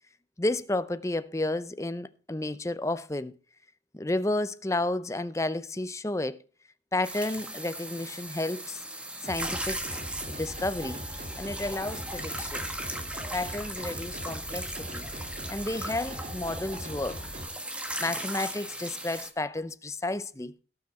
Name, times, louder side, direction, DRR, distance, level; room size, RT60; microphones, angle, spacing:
voice 1, 0.4-3.4 3.9-6.4 6.9-8.8 9.3-9.8 10.3-11.0 11.4-12.6 13.3-15.1 15.5-17.3 18.0-20.5, left 2 dB, 15° left, 0.6 m, -31 dB
sound 1, 7.0-19.3, right 1 dB, 5° right, 1.3 m, -37 dB
sound 2, 9.2-17.4, equal, 45° right, 1.8 m, -41 dB
17.5 x 6.1 x 4.2 m
head